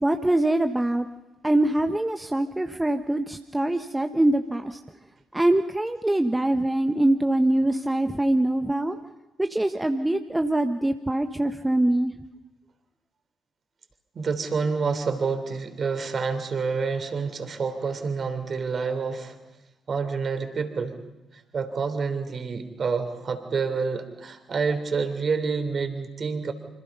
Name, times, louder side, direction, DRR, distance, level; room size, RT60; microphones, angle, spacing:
voice 1, 0.0-1.1 1.4-4.8 5.3-9.0 9.4-12.1, right 1 dB, 10° right, 7 dB, 1.3 m, -23 dB
voice 2, 14.1-19.4 19.9-21.0 21.3-26.5, right 5 dB, 45° right, 8 dB, 3.7 m, -28 dB
27.0 x 26.0 x 5.6 m, 0.96 s
hypercardioid pair, 45°, 0 cm